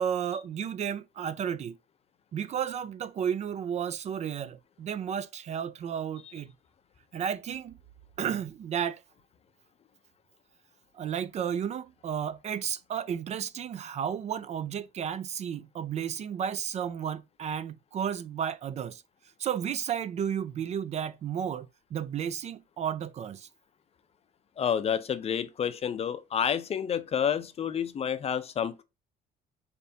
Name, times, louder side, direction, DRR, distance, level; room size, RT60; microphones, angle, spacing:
voice 1, 0.0-1.8 2.3-6.5 7.1-7.7 8.2-9.0 10.9-19.0 19.4-23.5, right 8 dB, 40° right, 0.4 m, -33 dB
voice 2, 24.6-28.8, left 8 dB, 35° left, 0.5 m, -29 dB
3.9 x 3.4 x 2.7 m
cardioid pair, 110°, 17 cm